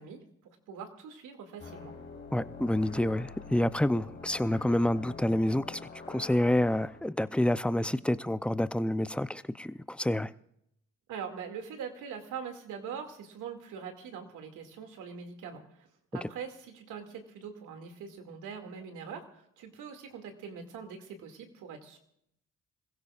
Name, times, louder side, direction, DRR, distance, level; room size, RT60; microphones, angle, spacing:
voice 1, 0.0-1.9 11.1-15.9 16.1-22.0, right 6 dB, 85° right, 2.4 m, -43 dB
sound 1, 1.6-7.0, left 4 dB, 40° left, 3.6 m, -46 dB
voice 2, 2.3-5.8 6.1-10.3 16.2-16.3, left 1 dB, 5° left, 0.5 m, -28 dB
27.0 x 16.0 x 2.5 m
cardioid pair, 90°, 30 cm